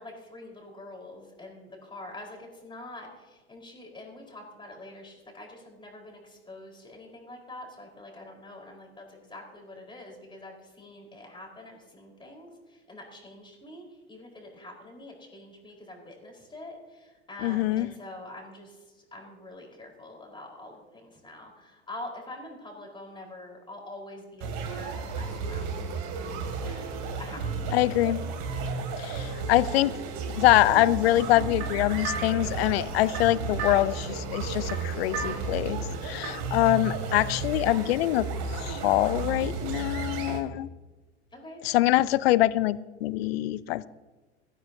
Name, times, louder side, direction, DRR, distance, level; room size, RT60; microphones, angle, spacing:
voice 1, 0.0-18.8 19.1-27.8 36.1-36.5 41.3-41.6, left 1 dB, 15° left, 0 dB, 4.6 m, -45 dB
voice 2, 17.4-17.9 27.7-28.2 29.0-29.9 30.3-38.3 38.5-40.7 41.6-43.9, left 16 dB, 60° left, 19 dB, 0.7 m, -24 dB
sound 1, 24.4-40.4, right 4 dB, 50° right, 2.7 m, -33 dB
sound 2, 31.2-36.6, right 4 dB, 70° right, 3.7 m, -39 dB
21.0 x 15.0 x 2.8 m, 1.3 s
figure-of-eight pair, 85°, 35 cm